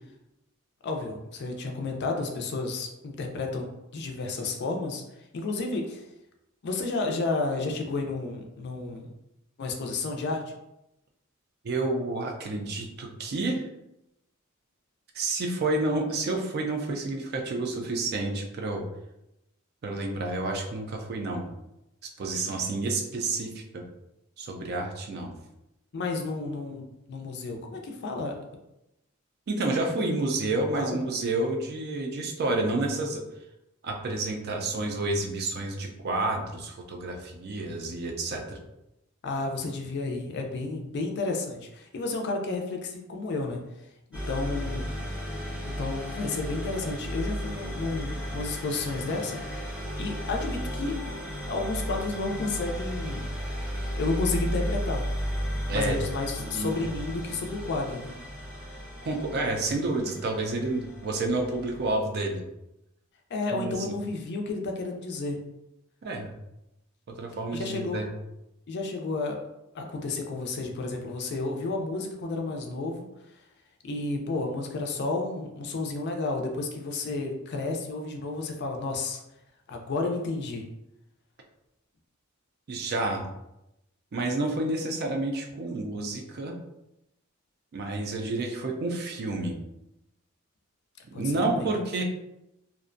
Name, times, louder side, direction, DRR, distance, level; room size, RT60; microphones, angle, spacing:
voice 1, 0.8-5.0 5.3-6.0 6.6-9.1 9.6-10.5 25.9-28.4 30.7-31.0 39.2-43.6 44.1-44.9 45.6-49.4 50.0-51.0 51.5-53.3 54.0-55.0 55.7-58.2 63.3-65.4 67.5-68.0 68.7-69.4 69.7-73.1 73.8-79.2 79.7-80.6 91.1-91.6, left 3 dB, 55° left, 3 dB, 0.4 m, -31 dB
voice 2, 11.6-13.6 15.1-18.8 19.8-21.5 22.2-23.8 24.4-25.3 29.5-33.2 33.8-38.6 55.7-56.0 56.4-56.7 59.0-62.4 63.5-63.7 66.0-66.3 67.1-68.1 82.7-83.2 84.1-86.6 87.7-89.6 91.1-92.0, right 2 dB, 50° right, 3 dB, 0.4 m, -29 dB
sound 1, 44.1-61.9, equal, 5° right, 0.7 m, -34 dB
2.5 x 2.1 x 2.5 m, 0.89 s
head